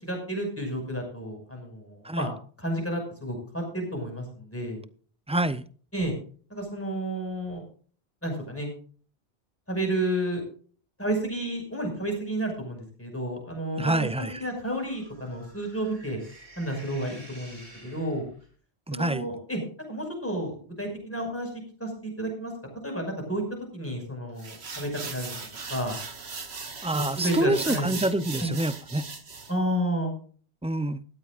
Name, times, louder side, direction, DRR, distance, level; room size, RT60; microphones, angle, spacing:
voice 1, 0.0-2.3 2.6-4.8 5.9-6.1 6.5-7.6 8.2-8.7 9.7-10.4 11.0-16.2 16.6-18.2 18.9-19.6 19.9-21.5 21.8-22.5 22.8-23.4 23.7-25.3 25.7-26.0 26.9-27.9 28.4-28.5 29.5-30.1, right 1 dB, 10° left, 5.7 m, -31 dB
voice 2, 5.3-5.6 13.8-14.3 18.9-19.3 26.8-29.1 30.6-31.0, right 1 dB, 10° right, 0.5 m, -26 dB
sound 1, 14.2-18.5, right 1 dB, 45° right, 3.9 m, -51 dB
sound 2, 24.4-29.5, right 4 dB, 75° right, 1.9 m, -38 dB
17.5 x 13.5 x 2.5 m
omnidirectional pair, 1.1 m